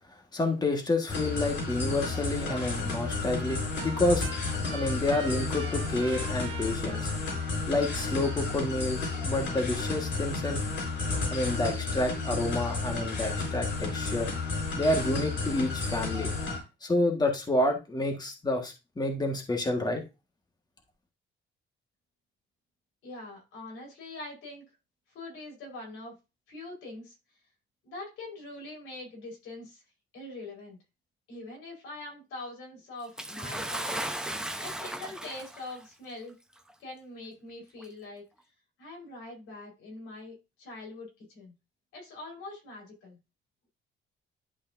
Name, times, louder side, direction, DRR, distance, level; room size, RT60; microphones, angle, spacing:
voice 1, 0.3-4.3 4.7-7.1 7.7-10.6 11.3-14.3 14.8-16.3 16.8-20.0, left 2 dB, 20° left, 3 dB, 1.6 m, -29 dB
sound 1, 1.1-16.6, left 3 dB, 65° left, 4.1 m, -32 dB
Trumpet, 2.0-2.2 2.5-8.7, right 7 dB, 90° right, 1.1 m, -45 dB
voice 2, 23.0-24.7 25.1-26.2 26.5-27.2 27.8-29.8 30.1-30.8 31.3-36.3 36.8-38.2 38.8-41.5 41.9-43.2, left 2 dB, 90° left, -1 dB, 4.6 m, -43 dB
Bathtub (filling or washing) / Splash splatter, 33.2-35.8 36.7-36.8 37.8-37.9, right 1 dB, 5° right, 0.8 m, -35 dB
11.0 x 5.3 x 2.6 m, 0.27 s
cardioid pair, 105°, 21 cm